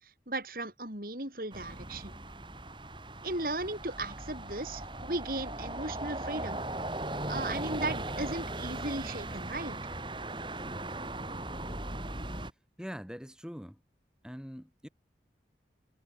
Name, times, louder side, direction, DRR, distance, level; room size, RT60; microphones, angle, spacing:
voice 1, 0.0-2.2 3.2-6.7 7.3-9.8, right 2 dB, 50° right, 7.9 m, -36 dB
sound 1, 1.5-12.5, right 1 dB, 25° right, 7.4 m, -38 dB
voice 2, 12.8-13.8 14.2-14.9, equal, 5° right, 6.3 m, -43 dB
head